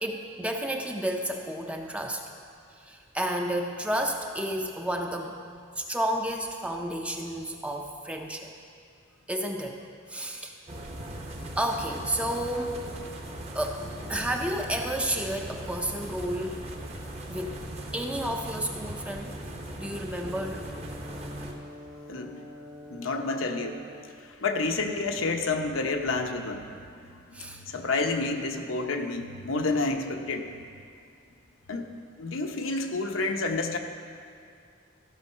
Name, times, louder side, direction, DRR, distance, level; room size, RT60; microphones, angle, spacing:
voice 1, 0.0-2.2 2.8-5.4 5.8-8.5 9.3-9.8 10.1-10.5 11.6-12.8 13.5-16.7 17.3-17.6 17.9-19.4 19.7-20.7 27.3-27.6, right 1 dB, 5° right, 2 dB, 0.6 m, -31 dB
sound 1, 10.7-21.5, right 1 dB, 30° right, 0.9 m, -39 dB
Brass instrument, 19.9-24.1, left 2 dB, 70° right, 1.8 m, -46 dB
voice 2, 22.1-22.4 22.9-23.8 24.3-26.7 27.0-30.6 31.7-31.9 32.2-33.8, left 3 dB, 75° left, 4 dB, 0.9 m, -29 dB
14.5 x 6.4 x 5.6 m, 2.3 s
head